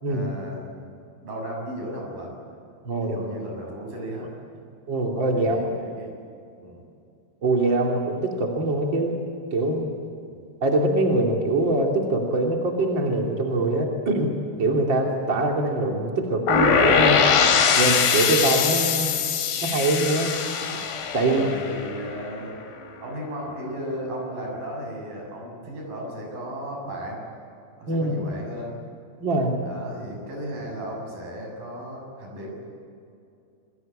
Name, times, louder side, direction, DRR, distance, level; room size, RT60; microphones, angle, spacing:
voice 1, 0.1-0.6 1.2-2.4 3.0-4.3 5.3-6.1 6.6-6.9 21.2-22.6 23.0-27.2 27.8-28.8 29.7-32.6, equal, 70° right, 0 dB, 9.1 m, -35 dB
voice 2, 2.8-3.3 4.9-5.6 7.4-9.2 9.5-9.9 10.6-14.3 14.6-17.2 17.8-19.2 19.6-20.3 21.1-21.5 27.9-28.2 29.2-29.6, right 2 dB, 35° right, 0 dB, 3.1 m, -23 dB
sound 1, 16.5-22.3, left 6 dB, 75° left, 3.8 m, -22 dB
28.5 x 22.0 x 8.8 m, 2.5 s
omnidirectional pair, 4.2 m